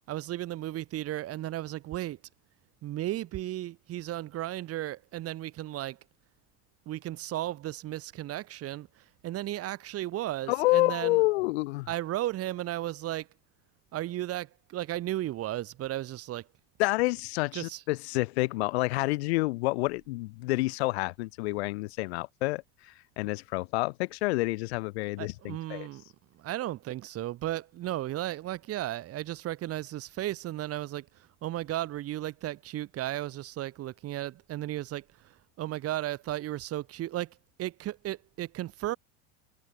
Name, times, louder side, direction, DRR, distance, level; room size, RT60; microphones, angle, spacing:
voice 1, 0.1-2.2 2.8-6.0 6.8-8.9 9.2-11.2 11.9-13.3 13.9-16.5 17.5-17.8 25.2-26.0 26.4-31.1 31.4-39.0, right 14 dB, 45° right, 5.1 m, -35 dB
voice 2, 10.5-11.9 16.8-25.9, left 22 dB, 75° left, 6.0 m, -28 dB
supercardioid pair, 110°, 32 cm